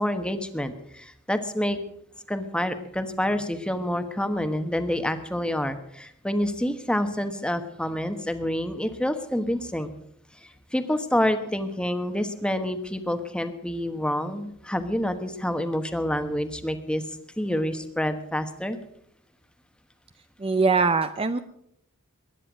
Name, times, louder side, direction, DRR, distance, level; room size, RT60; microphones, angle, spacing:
voice 1, 0.0-1.8 2.3-9.9 10.7-17.0 17.4-18.8, left 1 dB, 5° left, 8 dB, 1.2 m, -27 dB
voice 2, 20.4-21.4, right 4 dB, 25° right, 10 dB, 0.5 m, -22 dB
21.5 x 10.0 x 6.2 m, 0.74 s
head